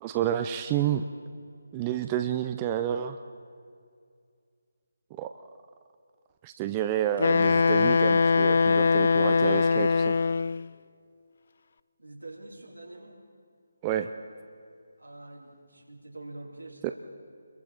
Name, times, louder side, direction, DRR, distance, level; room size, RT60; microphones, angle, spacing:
voice 1, 0.0-1.0 1.7-3.2 5.2-5.3 6.4-10.2 13.8-14.1 16.8-16.9, right 10 dB, 20° right, 7 dB, 0.5 m, -29 dB
Wind instrument woodwind instrument, 7.2-10.7, left 4 dB, 50° left, 0.4 m, -22 dB
voice 2, 12.0-13.2 15.0-16.9, right 2 dB, 85° right, -1 dB, 4.1 m, -45 dB
28.5 x 22.0 x 4.3 m, 2.2 s
figure-of-eight pair, 150°, 0 cm